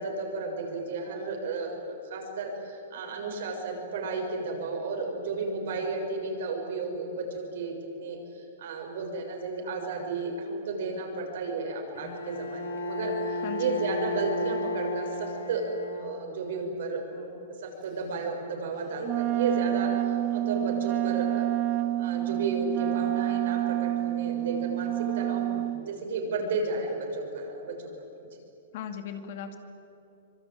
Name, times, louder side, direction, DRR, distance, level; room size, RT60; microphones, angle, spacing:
voice 1, 0.0-17.3 17.6-21.5 22.0-27.9, right 3 dB, 60° right, 2 dB, 6.9 m, -33 dB
Bowed string instrument, 11.9-16.5, left 1 dB, 80° left, 6.6 m, -34 dB
voice 2, 13.4-13.9 28.7-29.6, left 8 dB, 45° left, 6 dB, 2.4 m, -37 dB
Wind instrument woodwind instrument, 19.0-25.8, right 14 dB, 25° right, 0.6 m, -28 dB
25.5 x 24.5 x 9.2 m, 2.9 s
hypercardioid pair, 165°, 0 cm